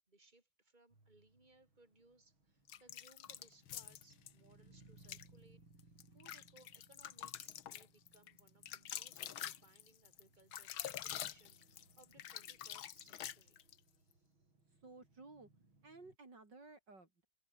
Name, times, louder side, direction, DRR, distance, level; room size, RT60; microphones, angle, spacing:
voice 1, 0.1-14.3, right 2 dB, 20° right, 5.5 m, -68 dB
sound 1, 0.9-16.2, right 2 dB, 85° right, 8.4 m, -67 dB
sound 2, 2.7-4.3 5.0-5.3 5.8-13.8, left 11 dB, 85° left, 1.9 m, -47 dB
voice 2, 14.7-15.5 15.8-17.2, right 3 dB, 60° right, 5.1 m, -56 dB
omnidirectional pair, 2.2 m